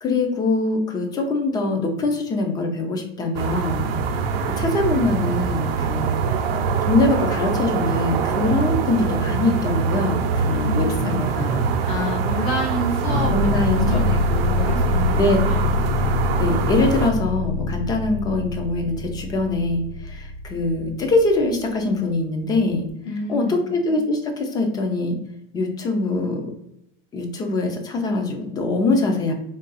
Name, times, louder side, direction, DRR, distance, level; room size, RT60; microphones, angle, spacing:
voice 1, 0.0-3.9 4.4-6.1 6.8-11.7 13.3-14.0 15.1-15.4 16.4-22.9 23.3-25.2 25.5-26.5 27.1-29.3, left 2 dB, 15° left, 4 dB, 0.4 m, -23 dB
sound 1, 3.3-17.1, right 5 dB, 80° right, 0.6 m, -23 dB
voice 2, 10.5-11.2 11.8-15.7 23.0-23.7, left 2 dB, 65° left, 1 dB, 1.2 m, -29 dB
sound 2, 13.0-22.1, left 3 dB, 85° left, 0.5 m, -26 dB
3.7 x 2.3 x 3.9 m, 0.82 s
supercardioid pair, 155°, 29 cm